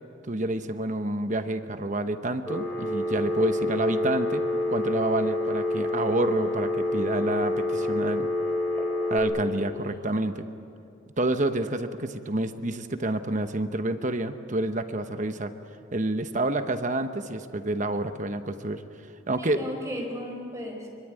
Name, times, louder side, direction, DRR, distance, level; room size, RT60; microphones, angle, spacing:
voice 1, 0.2-4.4 4.7-8.3 9.1-10.5 11.2-15.5 15.9-18.8 19.3-19.7, right 1 dB, 35° right, 8 dB, 1.0 m, -28 dB
Telephone, 2.5-9.2, left 2 dB, 10° left, 5.0 m, -27 dB
voice 2, 9.7-10.2 19.4-20.9, equal, 15° right, 1 dB, 4.8 m, -36 dB
24.5 x 24.5 x 9.1 m, 2.6 s
head